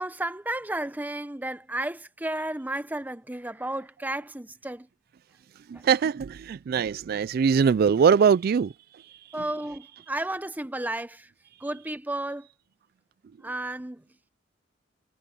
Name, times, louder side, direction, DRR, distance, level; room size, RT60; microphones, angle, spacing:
voice 1, 0.0-4.9 5.7-5.8 9.3-11.3 11.6-12.5 13.4-14.0, right 1 dB, 10° right, 0.9 m, -33 dB
voice 2, 5.7-9.4, right 6 dB, 50° right, 0.3 m, -23 dB
head